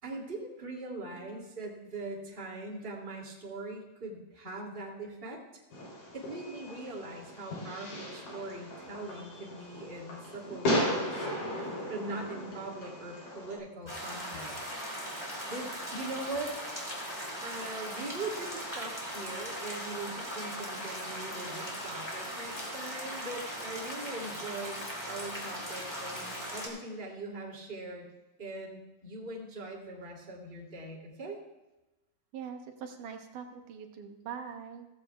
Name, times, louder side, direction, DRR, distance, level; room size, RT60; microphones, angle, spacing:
voice 1, 0.0-5.4 6.1-11.3 11.9-14.8 15.5-16.6 17.4-24.8 25.1-28.1 28.4-31.4, right 2 dB, 20° right, -3 dB, 2.4 m, -41 dB
voice 2, 1.2-1.5 6.5-6.6 16.8-16.9 32.3-34.9, right 7 dB, 75° right, 4 dB, 2.6 m, -43 dB
Fireworks, 5.7-13.6, equal, 85° left, 5.0 m, -36 dB
sound 1, 13.9-26.7, equal, 10° left, 3.1 m, -39 dB
16.5 x 14.5 x 2.4 m, 1.1 s
omnidirectional pair, 3.7 m